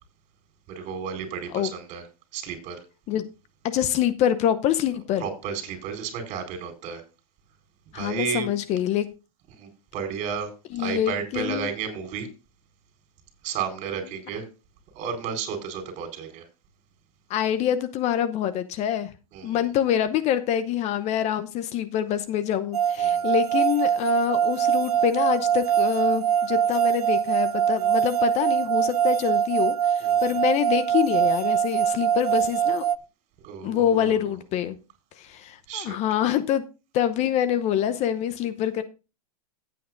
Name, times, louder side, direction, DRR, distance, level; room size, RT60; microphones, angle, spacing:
voice 1, 0.7-2.0 2.3-2.8 5.2-7.0 7.9-8.5 9.6-10.5 10.8-12.3 13.4-14.4 14.9-16.5 19.3-19.6 23.0-23.3 30.0-30.4 33.4-34.4 35.7-36.0, right 7 dB, 40° right, 5 dB, 4.4 m, -32 dB
voice 2, 3.6-5.3 7.9-9.1 10.7-11.7 17.3-19.1 19.4-32.8 33.6-34.8 35.2-36.6 36.9-38.8, left 10 dB, 35° left, 12 dB, 0.8 m, -25 dB
sound 1, 22.7-33.0, right 9 dB, 90° right, 0.5 m, -23 dB
15.0 x 8.6 x 2.6 m, 0.31 s
hypercardioid pair, 115°, 19 cm